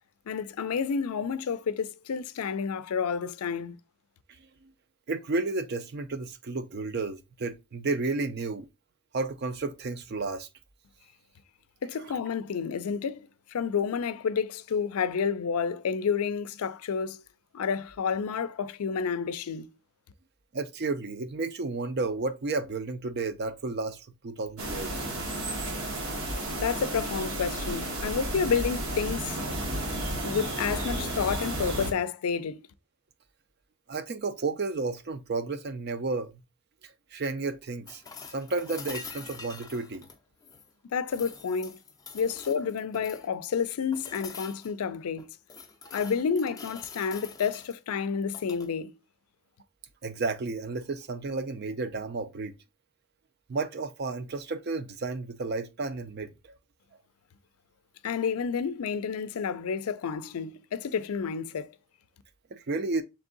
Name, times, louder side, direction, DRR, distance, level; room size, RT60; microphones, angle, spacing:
voice 1, 0.3-3.8 11.8-17.2 17.5-19.7 26.6-29.4 30.2-32.6 40.9-41.8 42.1-45.3 45.9-48.9 58.0-61.7, left 6 dB, 85° left, 0.4 m, -30 dB
voice 2, 4.4-4.7 5.1-8.7 9.1-10.5 20.5-25.0 33.9-36.3 36.8-38.0 38.3-40.0 50.0-52.6 53.5-56.5 62.5-63.0, right 3 dB, 45° right, 0.5 m, -32 dB
sound 1, 24.6-31.9, right 1 dB, 80° right, 1.1 m, -32 dB
sound 2, 37.9-40.7 41.1-43.3 43.9-44.7 45.2-47.7 48.2-48.7 50.7-50.8, left 5 dB, 15° left, 0.4 m, -45 dB
3.5 x 3.2 x 3.8 m
head